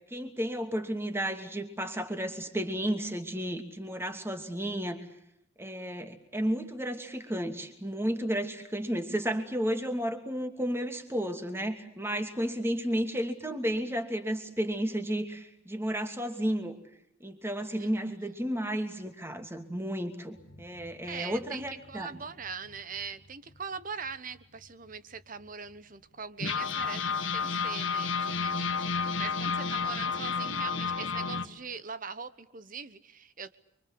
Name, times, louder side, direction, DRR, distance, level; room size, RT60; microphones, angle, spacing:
voice 1, 0.1-5.0 5.6-16.8 17.2-22.1, equal, 10° right, 6 dB, 2.8 m, -32 dB
sound 1, 20.4-23.6 24.0-24.1 24.4-24.6 25.2-25.3 26.4-31.5, left 5 dB, 75° left, 2.1 m, -32 dB
voice 2, 21.0-33.6, right 5 dB, 40° right, 13 dB, 1.2 m, -41 dB
29.5 x 24.5 x 8.0 m, 0.78 s
head